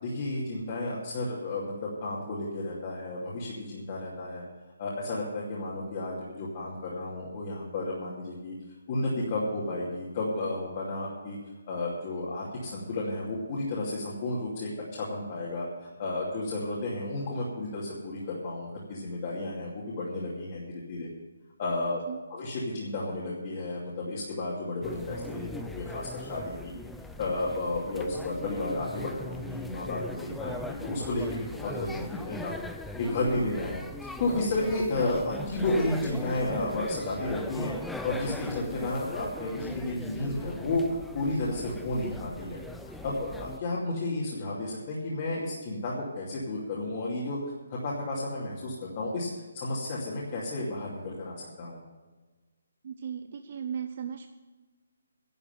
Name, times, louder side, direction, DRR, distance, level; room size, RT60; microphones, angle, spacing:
voice 1, 0.0-4.4 4.8-8.6 8.9-11.4 11.7-21.1 21.6-22.0 22.3-26.7 27.2-32.6 33.0-33.8 34.2-37.7 38.0-42.6 43.0-47.4 47.7-49.3 49.5-51.8, left 2 dB, 30° left, -6 dB, 2.6 m, -32 dB
sound 1, 24.8-43.6, left 2 dB, ahead, 0.4 m, -40 dB
voice 2, 52.8-54.3, right 8 dB, 40° right, 6 dB, 0.7 m, -36 dB
11.0 x 8.1 x 9.4 m, 1.3 s
hypercardioid pair, 170°, 0 cm